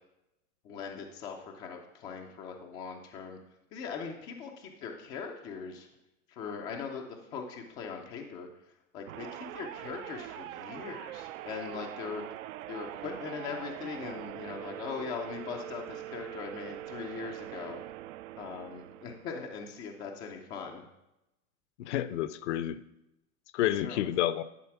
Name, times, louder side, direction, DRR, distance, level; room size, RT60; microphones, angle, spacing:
voice 1, 0.6-3.4 3.7-5.9 6.3-8.5 8.9-12.2 12.7-17.8 18.4-20.8 23.8-24.0, left 5 dB, 15° left, 2 dB, 0.3 m, -40 dB
sound 1, 9.1-19.4, right 14 dB, 60° right, 0.5 m, -43 dB
voice 2, 21.8-22.8 23.5-24.4, left 12 dB, 50° left, 15 dB, 0.6 m, -29 dB
11.0 x 4.0 x 5.8 m, 0.89 s
hypercardioid pair, 135°, 45 cm